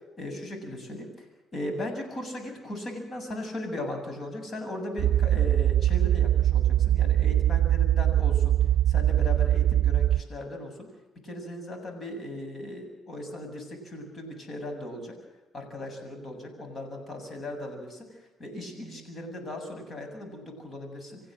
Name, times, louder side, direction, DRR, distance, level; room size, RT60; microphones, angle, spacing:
voice 1, 0.2-1.3 1.5-8.6 8.9-10.9 11.2-15.2 15.5-18.1 18.4-21.2, left 1 dB, 45° left, 5 dB, 7.8 m, -37 dB
sound 1, 5.0-10.2, right 12 dB, 70° right, 0.6 m, -22 dB
26.5 x 15.5 x 7.8 m, 1.0 s
cardioid pair, 90°, 0 cm